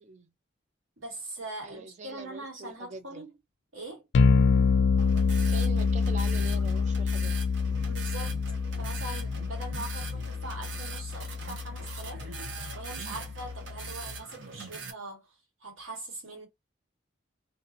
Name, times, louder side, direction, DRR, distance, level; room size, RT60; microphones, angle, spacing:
voice 1, 1.0-3.4 3.7-4.1 7.8-8.4 8.8-12.3 12.7-15.3 15.6-16.5, right 2 dB, 85° right, 1.4 m, -42 dB
voice 2, 1.6-3.3 5.4-7.4, right 3 dB, 35° right, 0.3 m, -43 dB
sound 1, 4.1-14.2, left 5 dB, 60° left, 0.3 m, -27 dB
sound 2, 5.0-14.9, right 4 dB, 70° right, 0.7 m, -42 dB
2.7 x 2.3 x 2.5 m
head